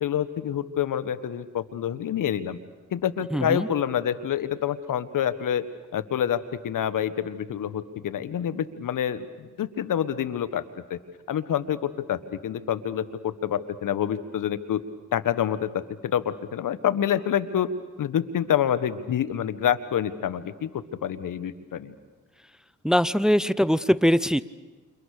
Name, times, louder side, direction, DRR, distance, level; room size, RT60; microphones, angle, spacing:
voice 1, 0.0-2.6 2.9-5.6 5.9-10.6 10.9-11.0 11.3-14.8 15.1-15.7 16.1-17.7 18.0-21.9, left 9 dB, 70° left, 12 dB, 1.6 m, -27 dB
voice 2, 3.3-3.7 22.8-24.4, equal, ahead, 16 dB, 0.9 m, -21 dB
29.5 x 28.0 x 6.7 m, 1.3 s
supercardioid pair, 50°, 33 cm